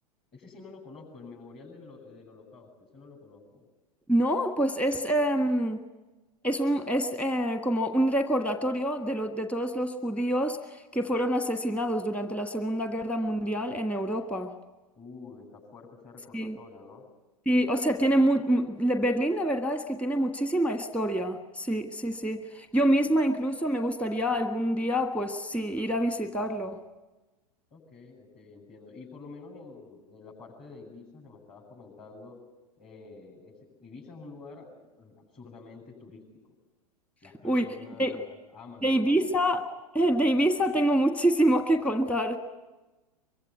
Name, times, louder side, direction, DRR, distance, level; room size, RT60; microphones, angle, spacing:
voice 1, 0.3-3.6 15.0-17.0 27.7-32.4 32.8-36.2 37.2-39.4, left 4 dB, 30° left, -5 dB, 8.0 m, -48 dB
voice 2, 4.1-5.8 6.4-10.6 10.9-14.5 16.3-16.6 17.4-26.8 37.4-38.2 38.8-39.7 39.9-42.4, right 1 dB, 5° left, 8 dB, 1.6 m, -26 dB
24.0 x 24.0 x 9.4 m, 1.1 s
figure-of-eight pair, 95°, 19 cm